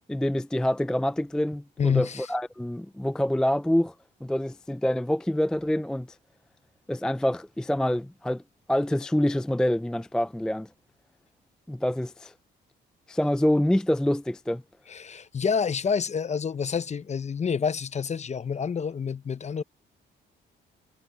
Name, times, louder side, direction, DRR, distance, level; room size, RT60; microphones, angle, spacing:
voice 1, 0.1-3.9 4.2-6.1 6.9-8.4 8.7-10.7 11.7-12.3 13.1-14.6, left 1 dB, 5° left, 0.4 m, -26 dB
voice 2, 1.8-2.3 14.9-19.6, left 6 dB, 35° left, 0.8 m, -28 dB
cardioid pair, 90°, 20 cm